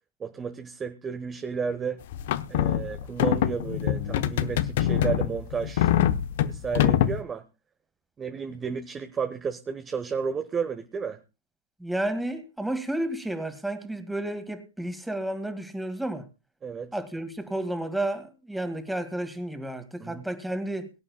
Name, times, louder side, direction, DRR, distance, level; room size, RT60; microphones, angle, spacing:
voice 1, 0.2-2.0 2.5-5.9 6.5-7.4 8.2-11.2 16.6-17.0 20.0-20.3, right 6 dB, 20° right, 1.1 m, -32 dB
sound 1, 2.1-7.2, left 11 dB, 55° left, 0.9 m, -24 dB
voice 2, 11.8-16.3 16.9-20.9, right 1 dB, 5° right, 2.2 m, -31 dB
23.0 x 11.0 x 2.3 m
figure-of-eight pair, 90°, 0 cm